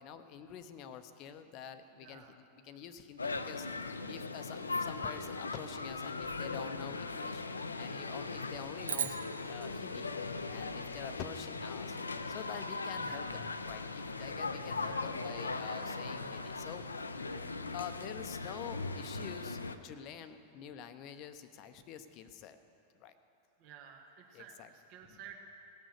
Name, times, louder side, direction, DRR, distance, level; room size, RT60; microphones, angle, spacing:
voice 1, 0.0-3.7 4.1-7.4 7.8-10.1 10.5-12.0 12.3-16.9 17.7-22.6 23.0-23.2 24.3-24.7 25.1-25.2, left 8 dB, 40° left, 10 dB, 0.7 m, -47 dB
voice 2, 2.0-2.4 13.0-13.3 14.8-15.1 23.6-25.4, right 9 dB, 45° right, 3 dB, 1.3 m, -53 dB
sound 1, 3.2-19.8, left 3 dB, 75° left, 0.5 m, -39 dB
sound 2, 8.9-11.3, right 8 dB, 65° right, 0.6 m, -41 dB
18.0 x 6.3 x 6.6 m, 3.0 s
figure-of-eight pair, 90°, 0 cm